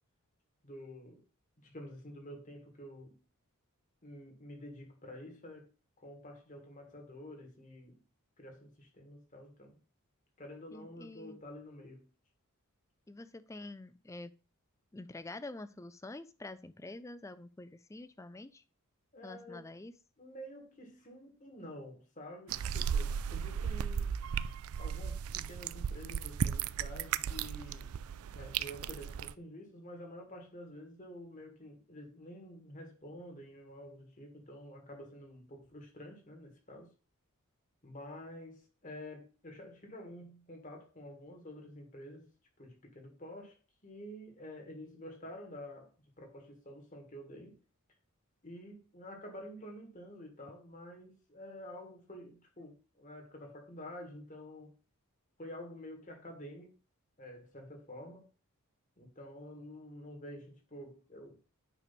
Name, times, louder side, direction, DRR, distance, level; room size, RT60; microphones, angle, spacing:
voice 1, 0.6-1.2 1.6-3.2 4.0-5.7 6.0-8.0 8.4-9.8 10.4-12.1 19.1-19.7 20.2-24.1 24.8-28.0 28.3-36.9 37.8-42.3 42.6-43.6 43.8-47.6 48.4-54.7 55.4-56.7 57.2-58.3 59.0-61.4, equal, 35° left, 2.2 m, -49 dB
voice 2, 10.7-11.4 13.1-14.3 14.9-18.6 19.2-19.9, left 2 dB, 15° left, 0.4 m, -47 dB
sound 1, 22.5-29.3, right 7 dB, 70° right, 0.4 m, -35 dB
9.1 x 3.3 x 6.0 m
head